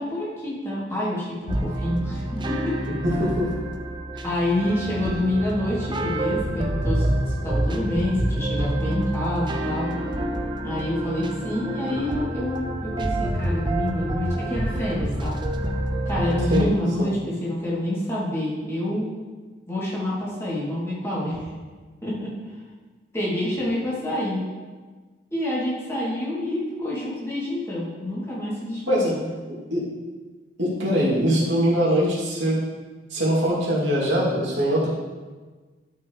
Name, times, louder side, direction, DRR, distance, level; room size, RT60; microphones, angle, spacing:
voice 1, 0.0-2.9 4.2-7.1 7.4-9.9 10.6-15.3 16.0-19.1 19.7-21.5 22.0-22.3 23.1-24.4 25.3-29.3, left 1 dB, 15° left, -8 dB, 2.8 m, -27 dB
sound 1, 1.5-16.6, right 1 dB, 25° right, 0.6 m, -27 dB
voice 2, 3.0-3.5 16.5-16.7 17.0-17.1 28.9-29.1 29.7-29.9 30.6-32.6 33.1-34.9, equal, 85° right, -6 dB, 2.7 m, -22 dB
12.5 x 5.9 x 3.2 m, 1.4 s
head